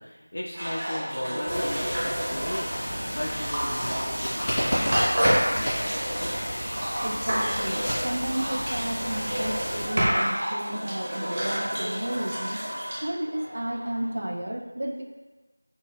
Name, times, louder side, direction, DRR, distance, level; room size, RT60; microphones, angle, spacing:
voice 1, 0.0-6.0, left 1 dB, 55° left, -2 dB, 0.4 m, -36 dB
sound 1, 0.5-14.1, equal, 30° right, 0.8 m, -29 dB
sound 2, 1.5-9.8, equal, 5° left, 0.7 m, -31 dB
voice 2, 7.0-12.6 13.0-15.0, right 1 dB, 45° right, 1 dB, 0.4 m, -32 dB
2.8 x 2.2 x 3.3 m, 1.2 s
figure-of-eight pair, 175°, 0 cm